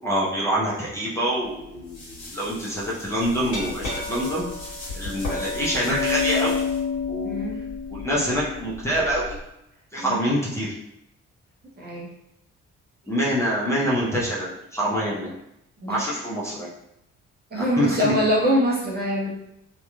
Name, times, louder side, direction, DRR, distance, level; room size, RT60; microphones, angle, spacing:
voice 1, 0.0-4.5 4.9-6.6 7.1-7.5 8.0-9.3 9.9-10.7 13.1-15.3 15.9-16.7 17.6-18.1, equal, 5° left, -8 dB, 0.8 m, -25 dB
sound 1, 1.4-6.8, left 1 dB, 65° left, 1.2 m, -42 dB
Glass, 3.5-9.4, left 5 dB, 45° left, 1.5 m, -29 dB
voice 2, 7.2-7.6 10.0-10.2 11.8-12.1 15.8-16.0 17.5-19.3, equal, 25° right, -4 dB, 0.8 m, -24 dB
2.9 x 2.4 x 2.3 m, 0.82 s
figure-of-eight pair, 45°, 39 cm